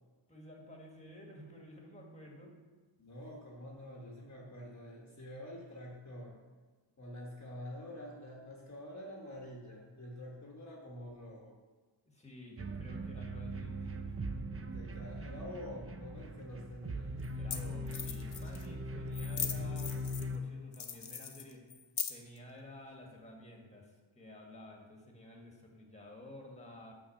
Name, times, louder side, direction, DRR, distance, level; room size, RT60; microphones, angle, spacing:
voice 1, 0.3-2.5 12.0-14.2 17.3-21.6 22.1-26.9, left 1 dB, 15° left, 0 dB, 1.5 m, -52 dB
voice 2, 3.0-6.4 7.0-11.6 14.7-17.1, left 1 dB, 35° left, -2 dB, 1.1 m, -47 dB
sound 1, 12.6-20.4, equal, 30° right, 0.5 m, -40 dB
sound 2, 16.4-16.5 17.2-17.3 17.5-17.6 17.9-18.7 19.1-20.4 20.7-22.4, left 7 dB, 55° left, 0.8 m, -40 dB
6.0 x 5.3 x 6.4 m, 1.3 s
wide cardioid pair, 90°, 47 cm